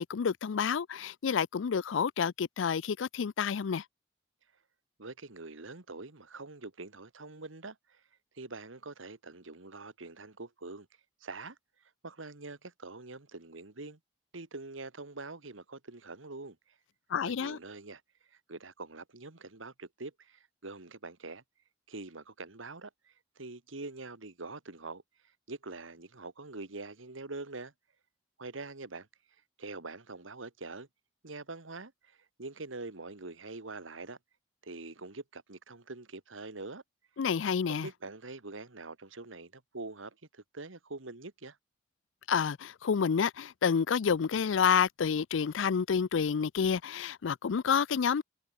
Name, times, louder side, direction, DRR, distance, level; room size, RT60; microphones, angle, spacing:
voice 1, 0.0-3.8 17.1-17.6 37.2-37.9 42.3-48.2, left 6 dB, 80° left, 0.4 m, -29 dB
voice 2, 5.0-8.0 8.3-10.9 11.2-14.0 14.3-16.6 17.3-18.0 18.3-21.4 21.9-27.7 28.4-29.1 29.6-30.9 31.2-34.2 34.6-36.8 37.7-41.6, right 3 dB, 90° right, 1.9 m, -44 dB
head